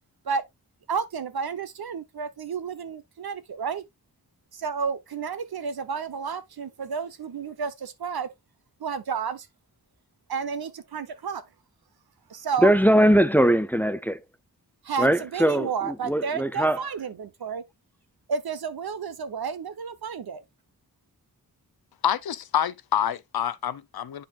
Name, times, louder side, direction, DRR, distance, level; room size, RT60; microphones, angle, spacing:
voice 1, 0.9-3.8 4.5-8.3 8.8-9.5 10.3-11.4 12.3-12.7 14.8-17.6 18.3-20.4, right 6 dB, 75° right, 1.0 m, -31 dB
voice 2, 12.6-14.2 15.0-16.8, equal, 5° left, 0.4 m, -21 dB
voice 3, 22.0-24.2, left 10 dB, 75° left, 0.6 m, -27 dB
8.9 x 4.9 x 2.4 m
wide cardioid pair, 70°, 38 cm